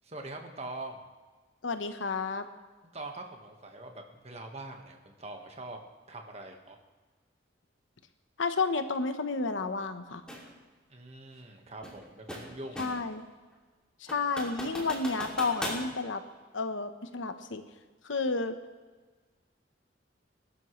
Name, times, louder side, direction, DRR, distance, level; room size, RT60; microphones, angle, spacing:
voice 1, 0.0-1.0 2.9-5.8 6.1-6.8 10.9-12.8, right 2 dB, 35° right, 3 dB, 1.5 m, -43 dB
voice 2, 1.6-2.4 8.4-10.2 12.8-13.2 14.0-16.2 16.5-17.6 18.0-18.6, left 4 dB, 90° left, 8 dB, 1.1 m, -31 dB
sound 1, 10.3-10.5 11.8-13.1 13.5-13.6 14.1-15.9, equal, 5° left, 2.7 m, -38 dB
22.0 x 12.0 x 3.2 m, 1.3 s
head